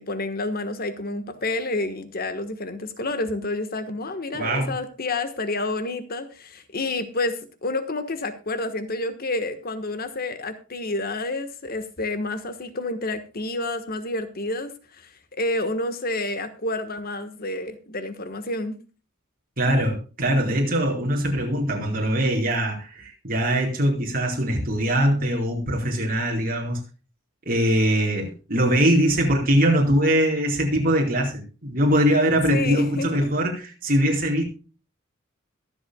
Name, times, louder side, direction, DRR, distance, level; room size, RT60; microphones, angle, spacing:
voice 1, 0.0-15.0 15.4-18.8 32.5-33.3, left 2 dB, 50° left, 10 dB, 1.3 m, -29 dB
voice 2, 4.3-4.7 19.6-26.8 27.5-34.4, right 1 dB, 45° right, 0 dB, 4.4 m, -22 dB
22.5 x 7.8 x 2.2 m, 0.35 s
head